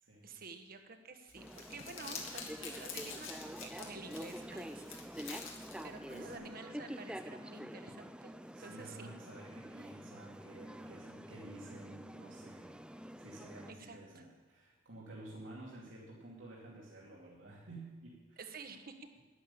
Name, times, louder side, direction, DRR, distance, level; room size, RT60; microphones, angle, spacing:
voice 1, 0.2-9.1 13.8-14.2 18.4-19.2, right 3 dB, 50° right, 6 dB, 1.3 m, -51 dB
Crumpling crinkling, 1.3-6.3, left 5 dB, 85° left, 2.3 m, -48 dB
sound 1, 1.4-13.7, equal, 5° right, 0.4 m, -47 dB
voice 2, 8.5-12.7 13.2-18.4, right 2 dB, 85° right, -5 dB, 2.7 m, -51 dB
11.0 x 10.5 x 7.2 m, 1.3 s
head